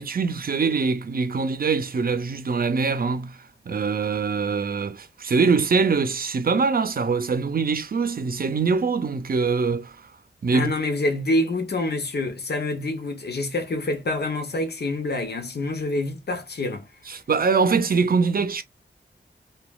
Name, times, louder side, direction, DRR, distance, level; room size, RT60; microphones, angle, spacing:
voice 1, 0.0-3.4 3.7-10.0 10.4-10.7 17.1-18.6, right 5 dB, 55° right, 0.5 m, -23 dB
voice 2, 10.5-16.9, left 2 dB, 65° left, 0.7 m, -26 dB
2.9 x 2.3 x 2.2 m
wide cardioid pair, 85°, 18 cm